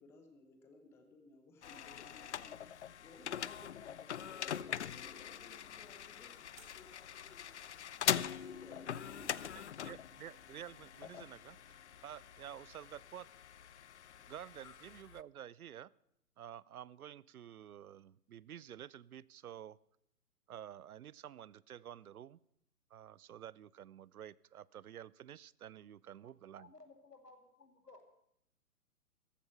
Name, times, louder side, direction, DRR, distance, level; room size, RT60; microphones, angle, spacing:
voice 1, 0.0-7.5 8.2-9.8 14.1-14.2 14.6-14.8, left 3 dB, 5° left, 6 dB, 0.7 m, -58 dB
sound 1, 1.6-15.2, left 9 dB, 50° left, 0.5 m, -42 dB
sound 2, 6.5-12.2, right 6 dB, 25° right, 2.3 m, -71 dB
voice 2, 9.6-13.3 14.3-15.9 16.4-19.8 20.5-22.4 22.9-26.7, right 10 dB, 70° right, 23 dB, 0.5 m, -51 dB
voice 3, 26.6-28.0, left 3 dB, 85° left, 5 dB, 2.7 m, -58 dB
14.0 x 12.0 x 5.6 m, 0.73 s
figure-of-eight pair, 125°, 46 cm